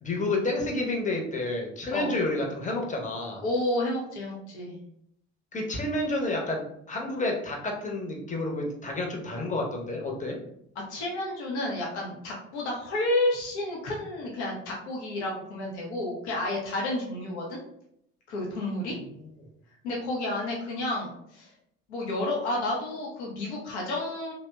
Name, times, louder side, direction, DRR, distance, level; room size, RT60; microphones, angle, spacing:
voice 1, 0.0-3.4 5.5-10.4 18.9-19.3, left 2 dB, 25° left, 0 dB, 0.7 m, -30 dB
voice 2, 3.4-4.8 10.9-17.6 18.3-19.0 19.8-21.5 21.9-24.3, left 1 dB, 85° left, -2 dB, 0.6 m, -30 dB
2.7 x 2.0 x 2.2 m, 0.74 s
hypercardioid pair, 50°, 33 cm